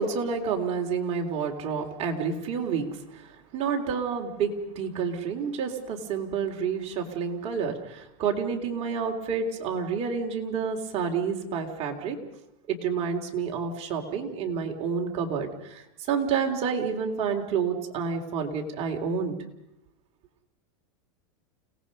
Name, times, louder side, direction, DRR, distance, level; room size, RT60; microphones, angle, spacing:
voice 1, 0.0-12.2 12.7-19.4, right 6 dB, 40° right, 2 dB, 3.5 m, -29 dB
29.5 x 18.5 x 5.5 m, 0.87 s
supercardioid pair, 135°, 16 cm